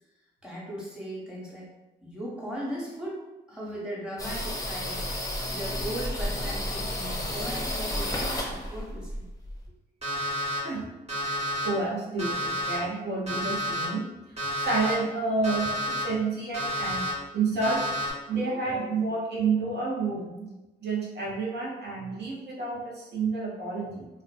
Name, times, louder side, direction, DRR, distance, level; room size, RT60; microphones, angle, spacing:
voice 1, 0.4-1.7 2.0-3.2 3.5-9.3, right 1 dB, 5° right, -5 dB, 1.0 m, -38 dB
sound 1, 4.2-9.7, left 1 dB, 20° left, 0.6 m, -32 dB
Alarm, 10.0-10.6 11.1-11.7 12.2-12.8 13.3-13.9 14.4-14.9 15.4-16.0 16.5-17.1 17.6-18.1, equal, 35° right, 1.2 m, -30 dB
voice 2, 11.6-17.1 17.3-17.9 18.3-20.5 20.8-24.1, right 3 dB, 60° right, -4 dB, 0.7 m, -30 dB
2.4 x 2.1 x 2.4 m, 1.0 s
supercardioid pair, 55°, 19 cm